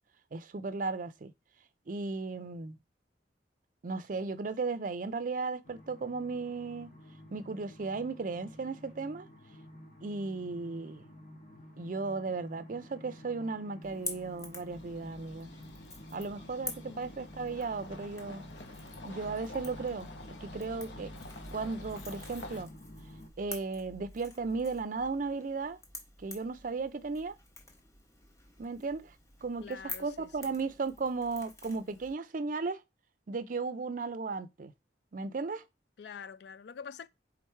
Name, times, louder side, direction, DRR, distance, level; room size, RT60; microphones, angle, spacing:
voice 1, 0.3-1.3 1.9-2.8 3.8-6.9 7.3-9.3 10.0-11.0 11.8-15.5 16.1-18.4 19.0-20.1 20.4-21.1 21.5-22.7 23.4-25.8 26.2-27.3 28.6-29.1 29.4-32.8 33.3-34.7 35.1-35.6, right 4 dB, 45° right, 0.5 m, -35 dB
sound 1, 5.6-23.3, left 1 dB, 50° left, 1.0 m, -51 dB
Crackle / Crack, 13.8-32.1, left 2 dB, 15° left, 0.9 m, -48 dB
sound 2, 14.7-22.7, left 1 dB, 80° left, 0.8 m, -48 dB
voice 2, 29.6-30.5 36.0-37.1, left 6 dB, 65° left, 0.3 m, -46 dB
3.9 x 3.0 x 4.5 m
head